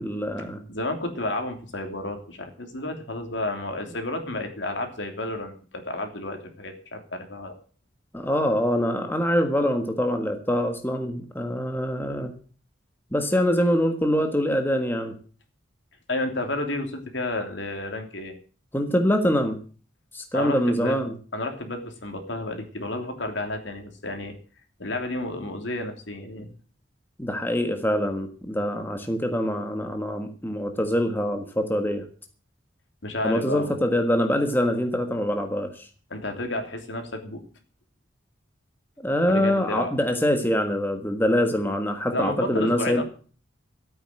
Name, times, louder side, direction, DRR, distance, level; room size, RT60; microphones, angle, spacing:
voice 1, 0.0-0.6 8.1-12.3 13.1-15.1 18.7-19.6 20.1-21.1 27.2-32.0 33.2-35.9 39.0-43.0, equal, 10° left, 5 dB, 1.5 m, -24 dB
voice 2, 0.7-7.5 16.1-18.3 20.3-21.0 21.3-24.3 24.8-26.5 33.0-33.8 36.1-37.4 39.3-39.9 42.1-43.0, left 2 dB, 75° left, 5 dB, 3.1 m, -31 dB
13.5 x 9.1 x 7.8 m, 0.40 s
head